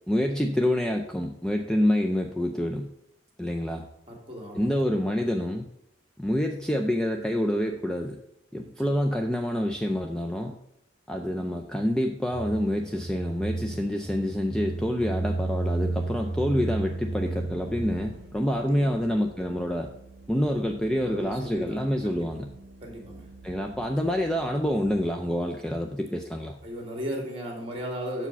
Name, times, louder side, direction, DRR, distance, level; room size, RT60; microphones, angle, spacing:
voice 1, 0.1-2.9 3.4-3.8 4.5-5.7 6.2-8.2 8.5-10.6 11.1-19.9 20.3-22.5 23.4-26.6, equal, 5° left, 3 dB, 0.4 m, -27 dB
voice 2, 4.1-4.7 8.6-9.0 18.6-19.0 20.9-22.3 22.8-23.3 26.6-28.3, equal, 30° right, 1 dB, 2.0 m, -36 dB
sound 1, 12.3-18.3, right 2 dB, 50° left, 3.0 m, -32 dB
Organ, 15.2-25.5, right 3 dB, 70° right, 0.9 m, -49 dB
6.7 x 4.9 x 7.0 m, 0.80 s
head